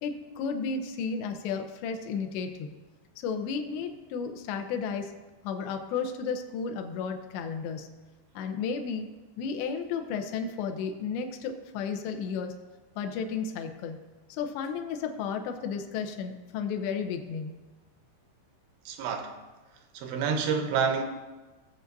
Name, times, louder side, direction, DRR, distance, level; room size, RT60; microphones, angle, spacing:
voice 1, 0.0-2.7 3.2-5.1 5.4-7.9 8.3-9.1 9.4-12.6 13.0-14.0 14.3-17.6, left 6 dB, 75° left, 5 dB, 2.7 m, -33 dB
voice 2, 18.9-19.3 19.9-21.0, right 6 dB, 80° right, 4 dB, 2.6 m, -28 dB
19.5 x 7.4 x 2.7 m, 1.2 s
omnidirectional pair, 5.6 m